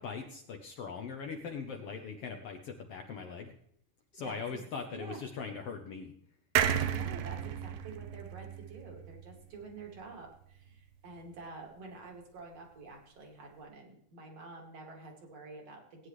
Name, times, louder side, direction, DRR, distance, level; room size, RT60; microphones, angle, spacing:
voice 1, 0.0-3.5 4.1-6.1, left 5 dB, 65° left, 4 dB, 1.5 m, -40 dB
voice 2, 4.2-4.6 4.9-5.2 6.9-16.1, right 3 dB, 50° right, 1 dB, 3.2 m, -48 dB
sound 1, 6.6-10.0 10.4-10.5 10.7-10.8, right 9 dB, 80° right, 2.3 m, -33 dB
18.5 x 9.7 x 3.2 m, 0.69 s
omnidirectional pair, 3.7 m